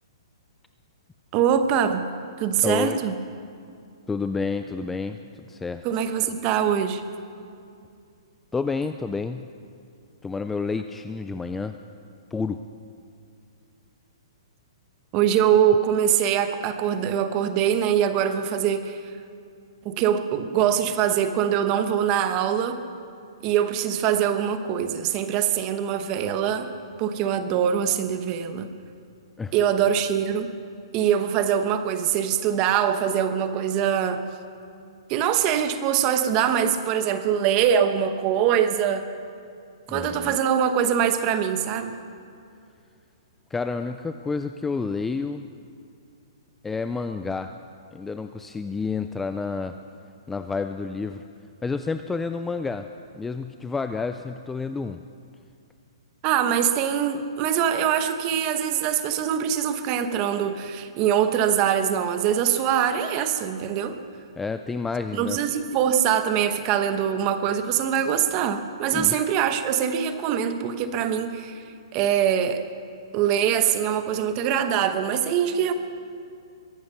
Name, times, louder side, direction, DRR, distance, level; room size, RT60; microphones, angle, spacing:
voice 1, 1.3-2.1 2.4-3.1 5.8-7.0 15.1-19.0 19.8-22.8 23.4-26.7 27.0-28.7 29.5-30.5 30.9-34.2 35.1-39.0 39.9-42.0 56.2-64.0 65.2-71.6 71.9-72.6 73.1-75.7, right 9 dB, 25° right, 9 dB, 0.9 m, -23 dB
voice 2, 2.6-3.0 4.1-5.2 5.5-5.9 8.5-9.4 10.2-11.8 12.3-12.6 29.4-29.5 39.9-40.4 43.5-45.5 46.6-47.5 47.9-49.8 50.3-51.2 51.6-52.9 53.1-55.0 64.4-65.4 68.9-69.2, left 4 dB, 5° left, 8 dB, 0.3 m, -29 dB
22.5 x 11.0 x 5.5 m, 2.4 s
hypercardioid pair, 160°, 3 cm